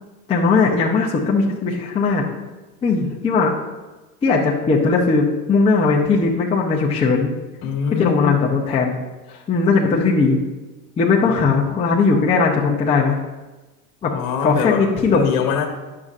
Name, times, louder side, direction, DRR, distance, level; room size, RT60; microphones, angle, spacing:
voice 1, 0.3-2.3 2.8-3.5 4.2-7.3 8.0-8.9 9.3-10.4 11.0-13.2 14.0-14.1 14.4-15.2, left 4 dB, 15° left, -4 dB, 0.6 m, -18 dB
voice 2, 7.6-8.4 11.2-11.6 14.1-15.7, left 7 dB, 55° left, 2 dB, 1.3 m, -24 dB
9.7 x 6.5 x 2.4 m, 1.2 s
supercardioid pair, 130°, 48 cm